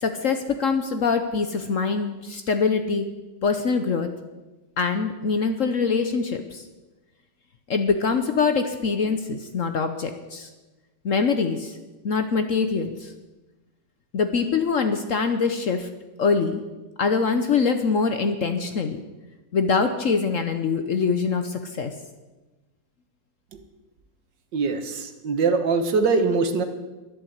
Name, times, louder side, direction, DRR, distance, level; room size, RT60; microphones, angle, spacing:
voice 1, 0.0-3.1 3.4-4.1 4.8-6.6 7.7-10.5 11.0-11.7 12.0-13.1 14.1-15.9 16.2-16.6 17.0-19.0 19.5-21.9, left 5 dB, 55° left, 7 dB, 1.0 m, -24 dB
voice 2, 24.5-26.6, right 4 dB, 70° right, 7 dB, 1.9 m, -22 dB
12.0 x 10.5 x 8.0 m, 1.2 s
omnidirectional pair, 2.0 m